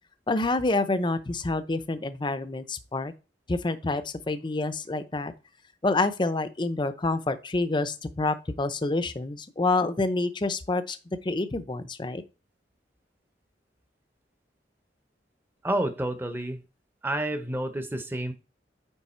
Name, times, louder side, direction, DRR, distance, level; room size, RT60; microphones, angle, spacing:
voice 1, 0.3-3.1 3.5-5.3 5.8-11.0 11.2-12.2, left 2 dB, 25° left, 0.5 m, -27 dB
voice 2, 15.6-16.6 17.0-18.3, right 1 dB, 10° right, 0.7 m, -29 dB
9.2 x 3.3 x 4.3 m
head